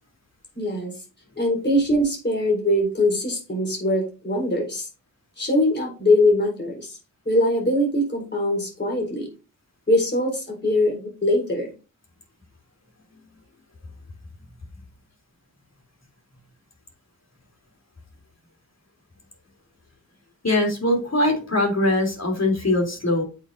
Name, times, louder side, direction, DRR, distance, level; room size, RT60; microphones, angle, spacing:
voice 1, 0.5-1.0 1.4-4.9 5.4-7.0 7.2-9.3 9.9-11.7, left 1 dB, 30° left, -1 dB, 4.2 m, -22 dB
voice 2, 20.4-23.2, left 1 dB, 45° left, 2 dB, 3.3 m, -22 dB
8.6 x 6.1 x 2.7 m, 0.32 s
wide cardioid pair, 70°, 35 cm